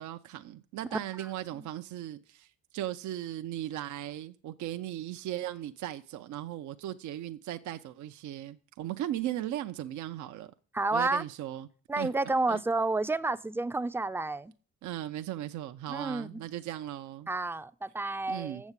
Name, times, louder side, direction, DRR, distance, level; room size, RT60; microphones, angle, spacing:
voice 1, 0.0-10.5 10.9-11.7 12.0-12.1 12.5-12.6 14.8-17.3 18.3-18.7, right 13 dB, 70° right, 0.6 m, -37 dB
voice 2, 10.7-11.2 11.9-14.5 15.9-16.4 17.3-18.7, right 3 dB, 10° right, 0.4 m, -30 dB
7.2 x 7.2 x 8.1 m
cardioid pair, 90°, 30 cm